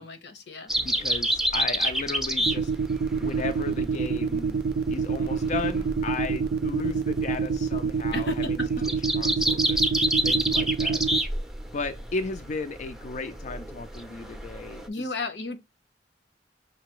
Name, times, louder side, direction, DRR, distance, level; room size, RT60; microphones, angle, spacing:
voice 1, 0.0-0.7 8.1-8.8 14.9-15.6, left 3 dB, 80° left, 0.9 m, -34 dB
sound 1, 0.7-14.9, right 1 dB, ahead, 0.6 m, -29 dB
voice 2, 0.8-2.7 3.2-4.6 4.9-8.6 9.2-9.8 10.2-11.0 11.7-15.1, left 3 dB, 45° left, 0.4 m, -35 dB
sound 2, 2.5-11.2, right 5 dB, 60° right, 0.4 m, -26 dB
5.8 x 2.8 x 3.0 m
head